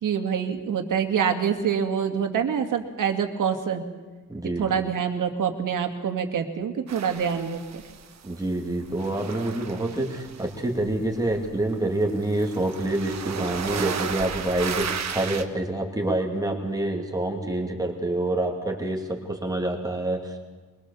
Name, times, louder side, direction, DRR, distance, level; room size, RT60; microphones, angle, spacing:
voice 1, 0.0-3.8 4.6-7.8, right 7 dB, 90° right, 5 dB, 2.2 m, -26 dB
voice 2, 4.3-4.7 8.2-20.4, right 1 dB, 10° right, 1 dB, 2.4 m, -27 dB
sound 1, 6.9-8.5 8.7-15.4, right 7 dB, 60° right, 1.4 m, -35 dB
23.0 x 22.0 x 7.0 m, 1.3 s
wide cardioid pair, 175°, 31 cm